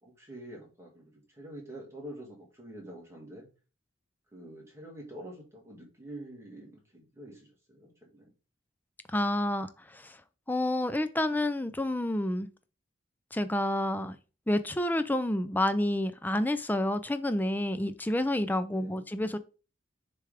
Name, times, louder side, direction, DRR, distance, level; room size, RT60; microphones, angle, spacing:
voice 1, 0.0-3.5 4.3-8.3 18.6-19.1, right 1 dB, 15° right, 2.0 m, -46 dB
voice 2, 9.1-10.2 10.5-12.5 13.3-14.2 14.5-19.4, left 1 dB, 10° left, 0.4 m, -29 dB
6.7 x 3.4 x 4.9 m
head